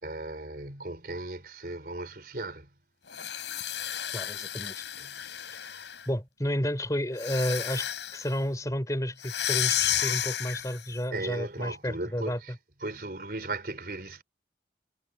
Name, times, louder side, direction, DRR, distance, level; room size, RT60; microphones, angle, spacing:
voice 1, 0.0-2.7 5.0-5.1 11.1-12.5 12.8-14.2, right 2 dB, 55° right, 4.5 m, -37 dB
sound 1, 3.1-6.1 7.1-8.3 9.2-10.9, left 11 dB, 90° left, 6.9 m, -32 dB
voice 2, 4.1-4.7 5.6-5.7 6.1-12.4, equal, 20° left, 4.1 m, -31 dB
head